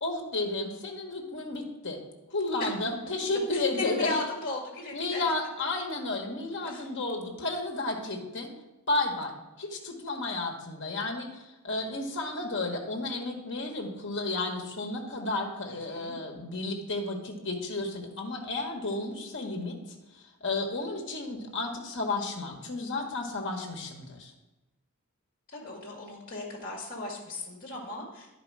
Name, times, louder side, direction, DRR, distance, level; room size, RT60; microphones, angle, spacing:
voice 1, 0.0-2.0 2.3-4.1 4.9-8.5 8.9-11.3 11.6-19.8 20.4-24.3, left 2 dB, 60° left, 2 dB, 1.5 m, -32 dB
voice 2, 3.5-5.2 6.6-6.8 15.7-16.2 25.5-28.3, left 2 dB, 40° left, -1 dB, 1.9 m, -36 dB
10.5 x 4.9 x 4.8 m, 1.0 s
head